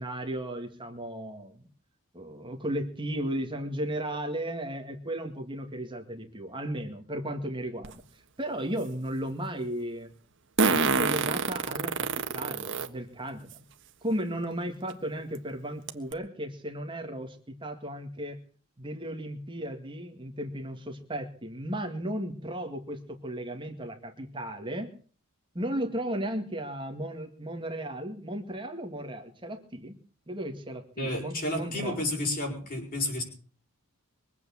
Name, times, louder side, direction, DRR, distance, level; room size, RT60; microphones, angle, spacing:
voice 1, 0.0-1.7 2.1-10.1 10.6-13.5 14.0-18.4 18.8-24.9 25.5-30.0 30.3-32.0, right 1 dB, 20° right, 3 dB, 2.0 m, -35 dB
Fart, 7.8-7.9 10.6-12.9 13.5-13.6 14.9-15.0 15.4-15.5 15.9-16.1, right 4 dB, 55° right, 1.5 m, -26 dB
voice 2, 31.0-33.2, left 1 dB, 40° left, 2 dB, 6.3 m, -31 dB
23.5 x 8.5 x 7.3 m, 0.43 s
head